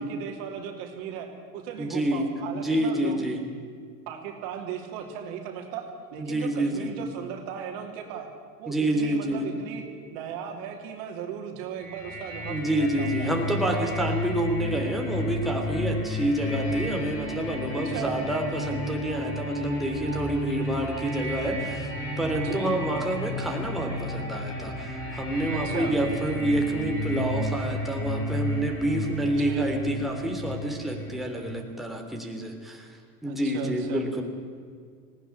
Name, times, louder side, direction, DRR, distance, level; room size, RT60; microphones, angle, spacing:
voice 1, 0.0-3.3 4.1-8.3 8.6-9.8 10.1-13.3 13.6-14.1 17.7-18.2 22.4-22.7 25.5-25.9 29.0-29.7 33.2-34.0, right 8 dB, 55° right, 3 dB, 3.1 m, -37 dB
voice 2, 1.8-3.4 6.2-6.9 8.7-9.5 12.5-21.9 22.2-32.9 33.2-34.2, right 1 dB, ahead, 1 dB, 3.4 m, -28 dB
sound 1, 11.8-31.5, equal, 25° left, 6.7 m, -32 dB
19.0 x 17.5 x 9.9 m, 2.1 s
hypercardioid pair, 90°, 49 cm